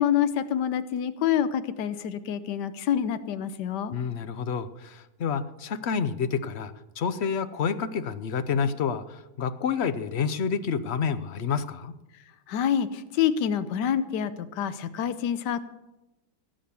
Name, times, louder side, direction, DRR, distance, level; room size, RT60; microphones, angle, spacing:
voice 1, 0.0-3.9 12.5-15.6, left 9 dB, 75° left, 13 dB, 1.4 m, -27 dB
voice 2, 3.9-11.9, left 6 dB, 55° left, 13 dB, 0.7 m, -29 dB
17.5 x 7.8 x 7.0 m, 0.97 s
omnidirectional pair, 1.9 m